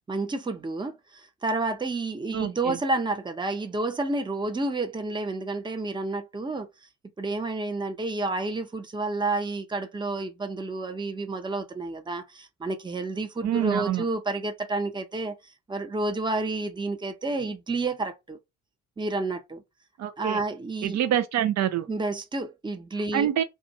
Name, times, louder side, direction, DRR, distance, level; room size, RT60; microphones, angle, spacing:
voice 1, 0.1-6.7 7.2-18.4 19.0-19.6 20.2-21.0 21.9-23.3, right 2 dB, 15° right, 0.7 m, -30 dB
voice 2, 2.3-2.8 13.4-14.0 20.0-20.4 20.8-21.9 23.1-23.4, right 11 dB, 65° right, 0.6 m, -26 dB
2.5 x 2.4 x 4.1 m
cardioid pair, 80°, 29 cm